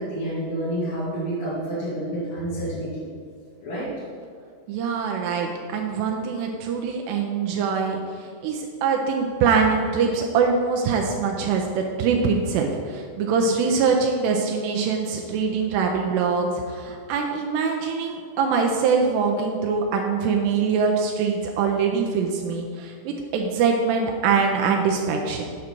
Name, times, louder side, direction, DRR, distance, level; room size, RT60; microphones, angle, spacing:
voice 1, 0.0-3.0 3.6-3.9, right 1 dB, 85° left, -12 dB, 4.4 m, -29 dB
voice 2, 4.7-25.6, right 5 dB, 80° right, 1 dB, 2.6 m, -23 dB
9.4 x 6.3 x 4.5 m, 2.1 s
omnidirectional pair, 5.1 m